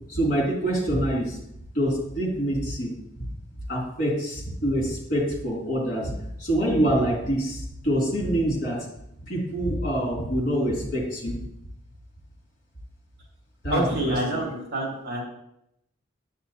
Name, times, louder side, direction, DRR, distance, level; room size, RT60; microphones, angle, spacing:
voice 1, 0.1-1.4 1.7-2.9 3.7-6.1 6.4-8.8 9.3-11.4 13.6-14.4, right 1 dB, 45° left, -4 dB, 2.9 m, -25 dB
voice 2, 13.7-15.2, right 1 dB, 50° right, -3 dB, 3.0 m, -27 dB
9.8 x 8.3 x 2.8 m, 0.76 s
head